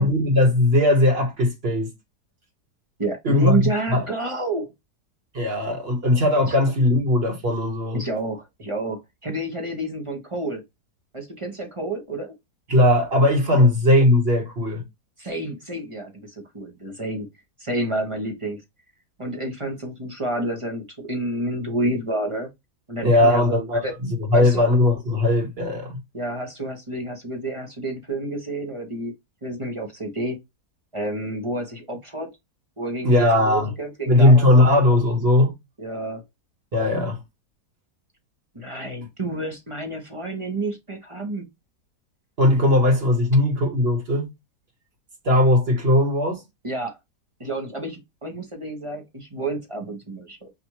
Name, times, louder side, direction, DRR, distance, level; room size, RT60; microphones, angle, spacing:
voice 1, 0.0-1.9 3.2-4.1 5.3-8.0 12.7-14.8 23.0-26.0 33.0-33.7 34.1-35.5 36.7-37.2 42.4-44.3 45.2-46.4, left 1 dB, 40° right, 1.6 m, -19 dB
voice 2, 3.0-4.7 6.5-6.6 7.9-10.6 11.1-12.3 13.5-13.7 15.2-17.3 17.6-18.6 19.2-22.5 22.9-23.6 23.8-23.9 24.3-24.6 26.1-29.1 29.4-30.4 30.9-32.3 32.8-34.7 35.8-36.2 38.5-41.5 46.6-47.0 47.4-50.5, right 2 dB, 25° right, 0.9 m, -29 dB
5.7 x 2.6 x 3.0 m
omnidirectional pair, 1.7 m